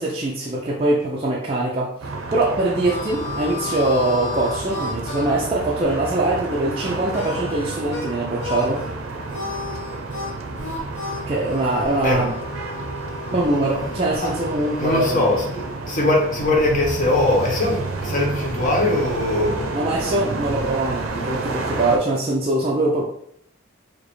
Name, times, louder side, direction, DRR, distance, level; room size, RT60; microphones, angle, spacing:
voice 1, 0.0-1.9 2.3-8.8 11.3-12.3 13.3-15.2 19.7-23.1, right 2 dB, 30° right, -4 dB, 0.4 m, -22 dB
sound 1, 2.0-22.0, right 3 dB, 85° right, 0.5 m, -30 dB
Harmonica, 2.3-8.1 8.4-8.9 9.3-15.3, left 3 dB, 70° left, 0.8 m, -34 dB
voice 2, 13.5-13.9 14.2-14.3 14.8-19.8, left 1 dB, 40° left, -1 dB, 0.9 m, -21 dB
4.9 x 2.0 x 3.0 m, 0.69 s
head